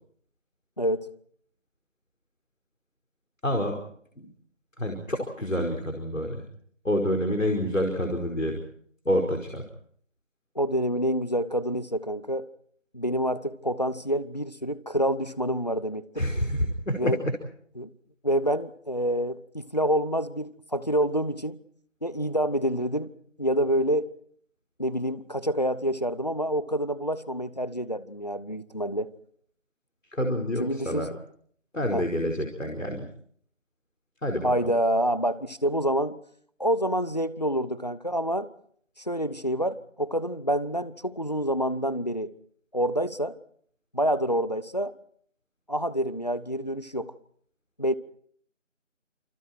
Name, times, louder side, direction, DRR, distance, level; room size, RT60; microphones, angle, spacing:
voice 1, 0.8-1.1 10.6-12.5 12.9-16.3 17.0-17.2 17.8-17.9 18.2-21.6 22.0-23.1 23.4-24.1 24.8-29.1 30.6-31.2 31.9-32.1 34.4-36.2 36.6-38.5 39.0-42.3 42.7-43.4 43.9-44.9 45.7-47.1 47.8-47.9, equal, 35° left, 0.9 m, -27 dB
voice 2, 3.4-3.7 4.2-4.3 4.8-6.4 6.8-8.6 9.0-9.6 16.1-17.1 30.1-31.1 31.7-33.1 34.2-34.7, equal, 80° left, 5.0 m, -27 dB
28.5 x 26.5 x 4.6 m
figure-of-eight pair, 170°, 38 cm